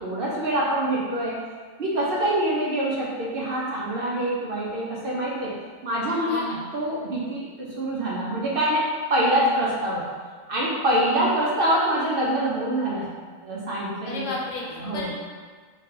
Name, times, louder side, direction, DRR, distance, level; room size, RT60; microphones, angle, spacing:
voice 1, 0.0-1.4 1.8-5.5 5.8-6.4 6.7-8.8 9.1-10.1 10.5-13.1 13.4-14.3 14.8-15.1, right 1 dB, 55° right, -5 dB, 0.7 m, -25 dB
voice 2, 6.3-6.7 14.0-15.2, left 2 dB, 70° left, -3 dB, 1.0 m, -32 dB
3.3 x 2.8 x 3.6 m, 1.5 s
omnidirectional pair, 1.3 m